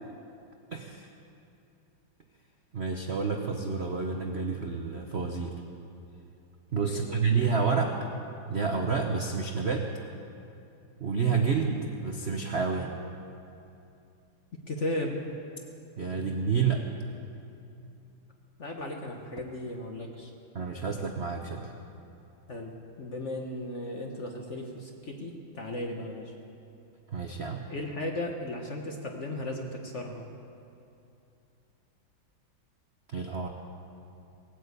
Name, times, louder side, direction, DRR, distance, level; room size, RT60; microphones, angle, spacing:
voice 1, 0.7-1.1 2.7-5.6 6.7-8.1 8.5-9.9 11.0-13.0 16.0-16.8 20.5-21.7 27.1-27.6 33.1-33.5, right 5 dB, 50° right, 2 dB, 0.7 m, -29 dB
voice 2, 6.8-7.2 14.5-15.2 18.6-20.3 22.5-26.3 27.7-30.3, left 1 dB, 45° left, 2 dB, 1.1 m, -36 dB
18.5 x 9.3 x 8.2 m, 2.7 s
omnidirectional pair, 2.3 m